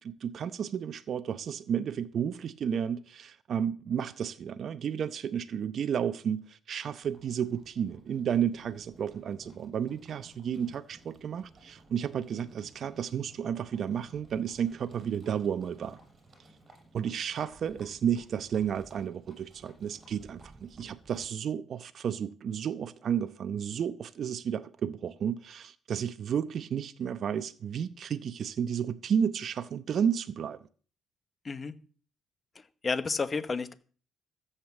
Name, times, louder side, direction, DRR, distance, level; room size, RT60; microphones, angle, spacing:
voice 1, 0.0-16.0 16.9-30.6, right 8 dB, 50° right, 0.7 m, -32 dB
Livestock farm animals working animals, 7.0-21.4, right 2 dB, 25° right, 6.2 m, -57 dB
voice 2, 31.4-31.8 32.5-33.7, left 4 dB, 25° left, 1.0 m, -32 dB
14.0 x 8.2 x 7.1 m
cardioid pair, 115°, 0 cm